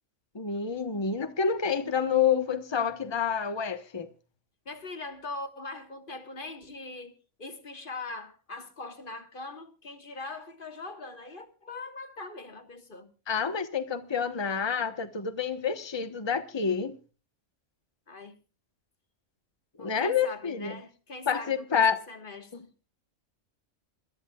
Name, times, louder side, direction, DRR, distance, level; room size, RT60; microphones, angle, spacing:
voice 1, 0.3-4.1 13.3-17.0 19.8-20.8 21.3-22.0 22.5-22.8, left 6 dB, 20° left, 1.0 m, -28 dB
voice 2, 4.6-7.1 7.4-13.1 18.1-18.3 19.8-22.7, left 3 dB, 40° left, 1.6 m, -41 dB
27.5 x 12.5 x 2.3 m
omnidirectional pair, 1.4 m